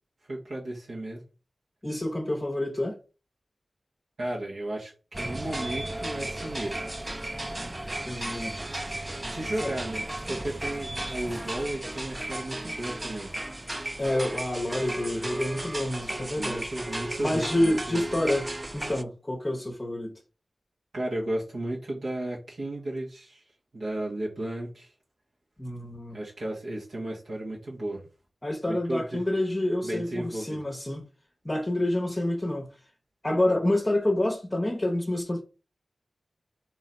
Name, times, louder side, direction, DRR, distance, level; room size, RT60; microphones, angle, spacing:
voice 1, 0.3-1.2 4.2-6.8 9.2-13.3 16.4-18.0 20.9-23.4 23.7-24.9 26.1-28.0 28.7-29.2 29.8-30.6, right 1 dB, 80° right, 1.4 m, -34 dB
voice 2, 1.8-3.0 8.1-8.6 9.6-9.7 14.0-16.7 17.2-20.1 25.6-26.2 28.4-31.1 31.4-32.7 33.2-35.4, left 1 dB, 25° left, 0.8 m, -28 dB
sound 1, 5.1-19.0, right 1 dB, 25° right, 0.3 m, -35 dB
3.8 x 3.0 x 4.4 m
wide cardioid pair, 60°, 0 cm